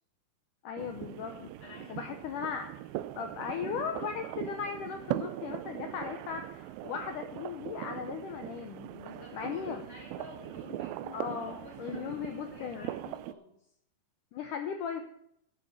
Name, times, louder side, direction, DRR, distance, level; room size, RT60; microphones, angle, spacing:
voice 1, 0.6-1.5 1.9-2.7 3.2-8.9 9.3-9.8 11.1-12.9 14.3-15.0, left 7 dB, 80° left, 5 dB, 1.9 m, -37 dB
sound 1, 0.8-13.3, right 14 dB, 85° right, 2.1 m, -40 dB
voice 2, 1.6-2.2 8.9-13.6, left 3 dB, 40° left, -3 dB, 4.9 m, -49 dB
12.0 x 7.0 x 6.6 m, 0.73 s
omnidirectional pair, 4.8 m